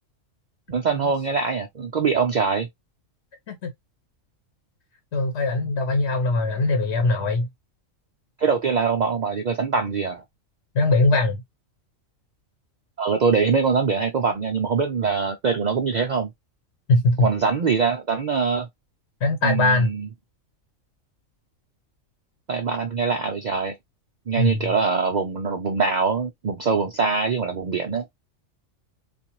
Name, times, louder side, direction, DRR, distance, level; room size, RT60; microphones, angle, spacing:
voice 1, 0.7-2.7 8.4-10.2 13.0-16.3 17.2-18.7 19.4-20.1 22.5-23.7 24.3-28.1, right 5 dB, 85° right, 0.4 m, -23 dB
voice 2, 5.1-7.5 10.7-11.4 16.9-17.3 19.2-19.9 24.4-24.7, left 2 dB, 55° left, 1.1 m, -21 dB
3.8 x 2.5 x 2.9 m
omnidirectional pair, 1.4 m